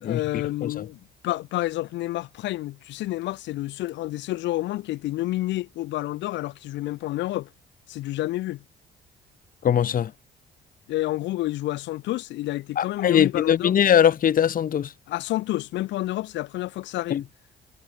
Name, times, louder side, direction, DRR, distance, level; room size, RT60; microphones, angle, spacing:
voice 1, 0.0-7.5 7.9-8.6 10.9-13.8 15.1-17.3, left 16 dB, 85° left, 1.1 m, -29 dB
voice 2, 9.6-10.1 12.8-14.9 17.1-17.2, left 9 dB, 50° left, 0.8 m, -21 dB
cardioid pair, 85°, 18 cm